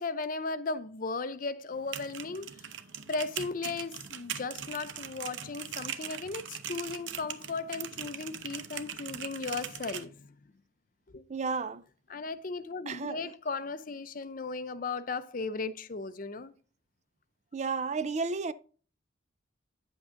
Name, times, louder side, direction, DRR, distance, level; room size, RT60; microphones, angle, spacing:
voice 1, 0.0-2.7 3.1-10.4 11.1-11.2 12.1-16.5, left 4 dB, 45° left, 0.5 m, -36 dB
sound 1, 1.7-10.0, right 9 dB, 65° right, 0.7 m, -40 dB
voice 2, 11.3-11.8 12.9-13.3 17.5-18.5, right 4 dB, 35° right, 0.4 m, -32 dB
9.4 x 7.9 x 2.5 m
head